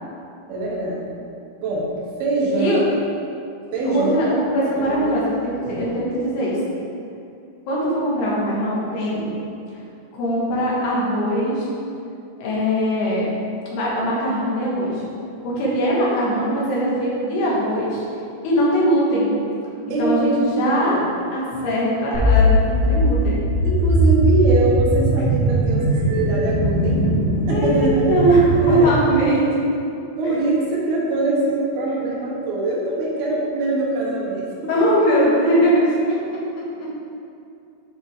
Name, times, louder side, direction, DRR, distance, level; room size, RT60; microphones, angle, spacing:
voice 1, 0.5-1.1 1.6-1.9 2.2-2.8 3.7-4.2 4.7-5.2 5.5-5.8 17.4-17.6 19.9-21.0 23.6-27.0 27.5-28.2 28.5-29.0 30.2-34.7, right 2 dB, 75° right, -3 dB, 3.0 m, -23 dB
voice 2, 3.8-6.6 7.7-9.3 10.1-11.7 12.4-13.3 13.7-15.0 15.4-18.0 18.4-19.3 20.0-21.0 21.3-23.4 27.5-29.4 34.7-35.7 36.1-36.2, equal, 85° left, -6 dB, 3.6 m, -21 dB
sound 1, 22.1-29.0, equal, 35° right, 2.0 m, -19 dB
10.5 x 4.9 x 3.6 m, 2.6 s
omnidirectional pair, 4.5 m